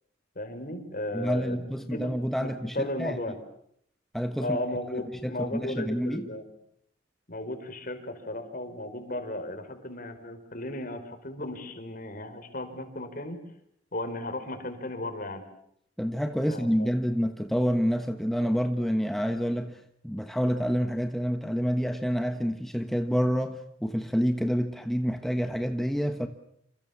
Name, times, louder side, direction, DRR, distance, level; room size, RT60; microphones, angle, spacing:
voice 1, 0.4-2.1 2.4-3.3 4.4-6.4 7.3-13.4 13.9-15.4 16.5-16.9, left 1 dB, 45° left, 5.2 m, -35 dB
voice 2, 1.1-3.2 4.1-4.6 4.9-6.3 16.0-26.3, equal, ahead, 1.2 m, -28 dB
28.5 x 28.0 x 7.3 m
head